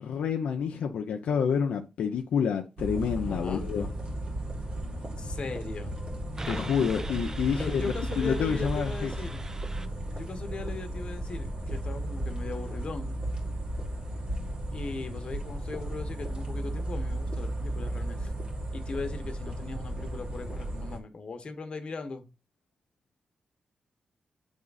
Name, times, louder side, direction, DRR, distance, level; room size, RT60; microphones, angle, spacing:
voice 1, 0.0-3.9 6.5-9.1, left 7 dB, 90° left, 0.7 m, -28 dB
sound 1, 2.8-21.0, right 1 dB, 50° right, 1.9 m, -34 dB
voice 2, 3.2-3.7 5.2-5.9 7.5-9.4 10.2-13.1 14.7-18.3 18.7-22.2, left 3 dB, 50° left, 1.2 m, -39 dB
sound 2, 6.4-9.9, right 2 dB, 25° right, 0.6 m, -42 dB
7.3 x 3.6 x 4.0 m
cardioid pair, 80°, 2 cm